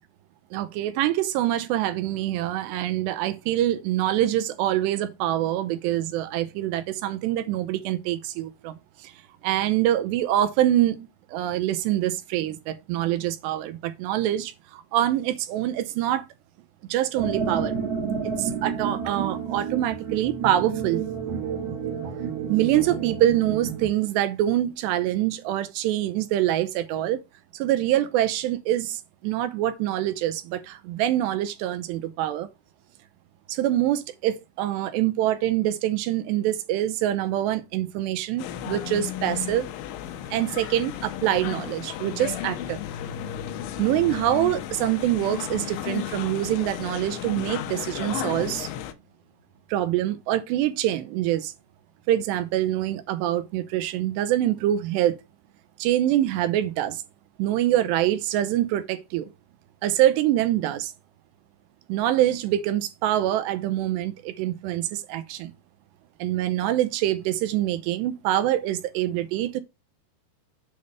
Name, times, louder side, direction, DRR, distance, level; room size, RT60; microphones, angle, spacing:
voice 1, 0.5-8.7 9.0-9.1 9.4-16.2 16.9-17.8 18.2-21.0 22.5-27.2 27.5-32.5 33.5-39.7 40.3-42.8 43.8-48.7 49.7-51.5 52.1-55.2 55.8-57.0 57.4-59.3 59.8-60.9 61.9-65.5 66.2-69.6, right 13 dB, 80° right, 2.6 m, -25 dB
sound 1, 17.2-23.9, right 6 dB, 60° right, 1.7 m, -30 dB
sound 2, 38.4-48.9, left 11 dB, 85° left, 3.1 m, -34 dB
sound 3, 41.8-49.5, left 5 dB, 70° left, 2.5 m, -46 dB
8.2 x 3.5 x 6.6 m
omnidirectional pair, 5.5 m